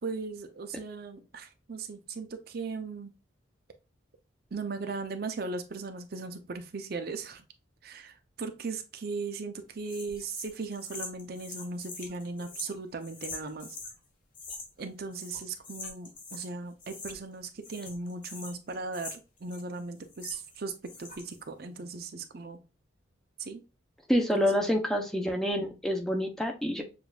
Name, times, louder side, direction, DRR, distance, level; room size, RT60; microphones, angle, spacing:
voice 1, 0.0-3.1 4.5-7.4 7.8-13.8 14.8-22.6 23.4-23.6 24.3-24.7, right 4 dB, 50° right, 7 dB, 0.5 m, -38 dB
sound 1, 9.9-14.0 14.3-14.9 15.1-16.5 16.8-17.4 17.6-20.6 20.8-21.4, left 3 dB, 40° left, 1.3 m, -44 dB
voice 2, 24.1-26.8, equal, ahead, 2 dB, 0.6 m, -27 dB
6.9 x 2.5 x 2.3 m, 0.30 s
head